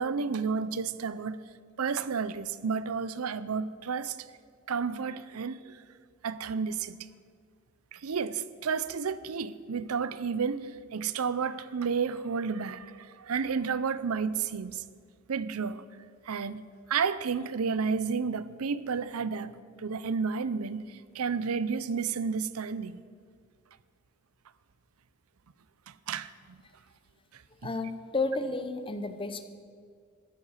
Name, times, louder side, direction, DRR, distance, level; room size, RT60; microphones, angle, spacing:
voice 1, 0.0-1.4 1.8-4.2 4.7-5.8 6.2-7.1 7.9-14.8 15.3-15.8 16.2-19.5 19.8-23.0 25.9-26.6 27.3-27.7, right 5 dB, 90° right, 0.6 m, -31 dB
voice 2, 27.6-29.4, left 3 dB, 25° left, 0.9 m, -32 dB
14.0 x 12.0 x 6.5 m
head